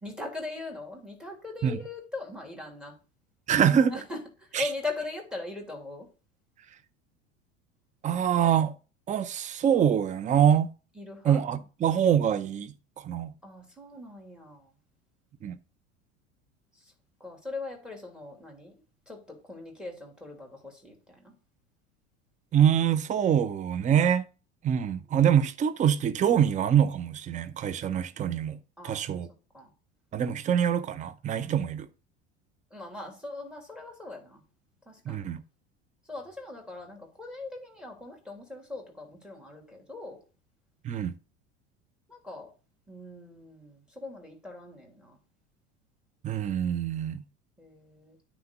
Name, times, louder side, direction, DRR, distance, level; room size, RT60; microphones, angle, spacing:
voice 1, 0.0-2.9 3.9-6.1 11.0-11.4 13.4-14.7 16.8-16.9 17.2-18.8 19.1-21.3 25.1-25.3 28.8-29.2 29.5-29.7 32.7-34.4 34.9-35.3 36.1-40.2 42.1-42.5 42.9-45.2 47.6-48.2, left 2 dB, ahead, 2.9 m, -40 dB
voice 2, 3.5-4.0 4.5-4.7 8.0-8.7 9.1-10.7 11.2-13.3 15.4-15.6 22.5-24.2 24.6-28.6 28.8-29.3 30.1-31.9 35.1-35.4 40.8-41.1 46.2-47.2, right 9 dB, 20° right, 0.6 m, -25 dB
9.3 x 3.2 x 6.7 m
figure-of-eight pair, 75°, 35 cm